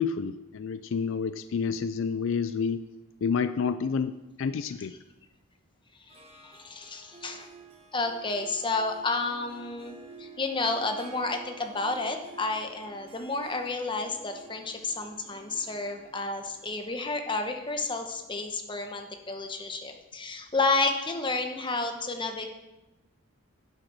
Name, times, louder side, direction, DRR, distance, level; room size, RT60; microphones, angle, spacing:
voice 1, 0.0-2.9 3.2-4.9, left 6 dB, 65° left, 12 dB, 0.4 m, -29 dB
voice 2, 6.1-7.5 7.9-22.5, left 3 dB, 25° left, 5 dB, 1.1 m, -31 dB
Harp, 6.1-19.6, right 3 dB, 30° right, 1.2 m, -51 dB
10.5 x 7.9 x 6.1 m, 1.0 s
head